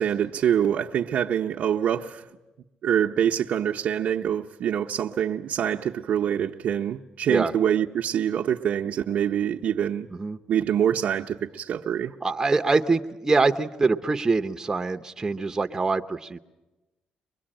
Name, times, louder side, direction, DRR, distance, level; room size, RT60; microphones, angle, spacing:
voice 1, 0.0-2.2 2.8-10.1 10.5-12.1, right 9 dB, 70° right, 0.7 m, -25 dB
voice 2, 12.2-16.4, right 3 dB, 20° right, 0.8 m, -24 dB
24.0 x 21.0 x 8.9 m
cardioid pair, 100°, 3 cm